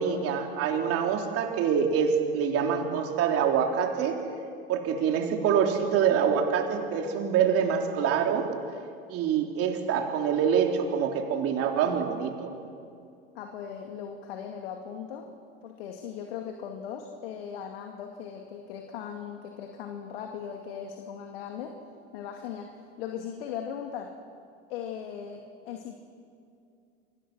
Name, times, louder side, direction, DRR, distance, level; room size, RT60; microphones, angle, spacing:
voice 1, 0.0-4.2 4.7-8.5 9.1-12.5, right 7 dB, 50° right, 3 dB, 3.7 m, -25 dB
voice 2, 13.4-15.3 15.6-21.8 22.1-22.7 23.0-24.1 24.7-26.0, left 8 dB, 70° left, 3 dB, 2.4 m, -38 dB
29.5 x 24.0 x 6.3 m, 2.4 s
hypercardioid pair, 90°, 31 cm